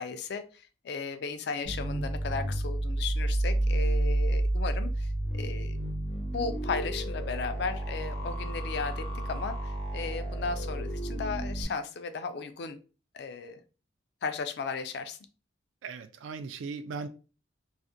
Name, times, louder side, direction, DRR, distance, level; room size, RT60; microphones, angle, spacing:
voice 1, 0.0-5.8 6.3-12.8 13.1-13.6 14.2-15.2, left 4 dB, 60° left, 0.3 m, -35 dB
sound 1, 1.6-11.6, right 1 dB, 85° left, 0.9 m, -30 dB
voice 2, 15.8-17.1, right 4 dB, 85° right, 0.3 m, -38 dB
2.4 x 2.1 x 2.6 m
head